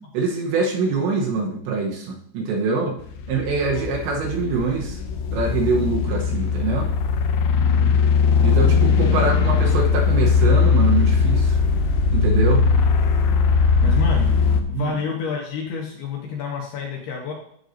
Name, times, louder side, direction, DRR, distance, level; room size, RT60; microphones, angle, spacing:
voice 1, 0.1-3.0 3.3-5.0 5.3-6.9 8.4-11.6 12.1-12.7 13.8-14.0 14.7-14.9, right 4 dB, 75° right, 0 dB, 3.1 m, -24 dB
sound 1, 3.0-14.6, left 5 dB, 85° left, 2.3 m, -19 dB
voice 2, 7.5-8.0 8.4-8.5 8.8-9.0 13.5-14.3 14.7-17.3, left 5 dB, 70° left, -1 dB, 2.7 m, -30 dB
15.5 x 5.6 x 2.7 m, 0.66 s
omnidirectional pair, 5.6 m